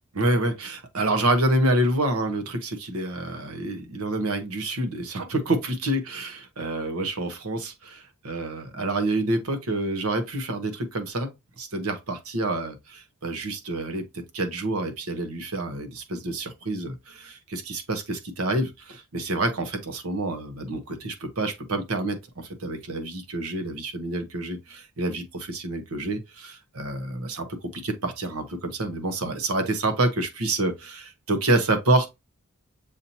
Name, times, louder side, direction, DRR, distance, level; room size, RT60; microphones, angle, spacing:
voice 1, 0.1-11.3 11.6-32.1, right 2 dB, 75° right, 1.1 m, -27 dB
7.0 x 2.8 x 2.7 m
head